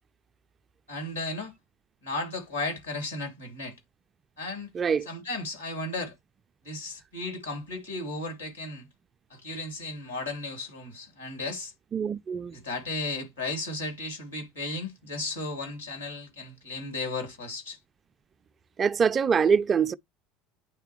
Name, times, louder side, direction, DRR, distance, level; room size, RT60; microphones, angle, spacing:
voice 1, 0.9-1.5 2.0-3.8 4.4-4.7 5.1-6.1 6.6-8.9 9.3-11.7 12.5-17.8, left 2 dB, 85° left, 2.5 m, -35 dB
voice 2, 4.7-5.1 11.9-12.6 18.8-19.9, right 6 dB, 30° right, 0.4 m, -24 dB
9.2 x 3.5 x 3.0 m
figure-of-eight pair, 65°, 0 cm